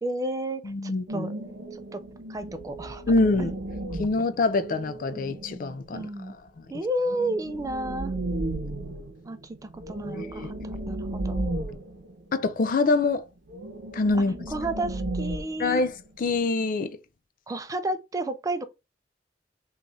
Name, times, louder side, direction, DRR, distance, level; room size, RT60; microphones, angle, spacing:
voice 1, 0.0-1.3 1.7-2.0 2.3-3.0 3.4-3.5 5.9-6.4 6.7-8.1 9.2-11.4 14.5-15.8 17.5-18.6, right 1 dB, 20° right, 0.3 m, -32 dB
voice 2, 0.6-1.3 3.1-3.5 4.0-6.0 8.4-8.6 10.0-10.5 12.3-13.2 13.9-14.3 15.6-17.0, left 3 dB, 50° left, 0.4 m, -25 dB
sound 1, 1.1-5.9 7.0-12.5 12.8-12.9 13.4-16.2, right 2 dB, 90° right, 0.7 m, -34 dB
3.4 x 2.4 x 3.9 m
head